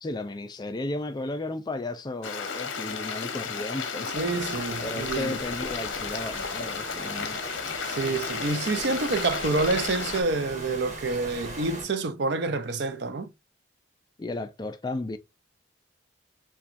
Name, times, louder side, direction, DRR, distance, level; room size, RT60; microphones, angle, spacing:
voice 1, 0.0-4.1 4.8-7.4 14.2-15.2, left 2 dB, 20° left, 0.3 m, -34 dB
Stream, 2.2-10.2, left 5 dB, 75° left, 0.7 m, -33 dB
sound 1, 4.1-11.9, right 1 dB, 35° right, 1.2 m, -40 dB
voice 2, 4.1-5.4 7.8-13.3, right 3 dB, 55° right, 0.5 m, -28 dB
5.8 x 2.2 x 2.5 m
head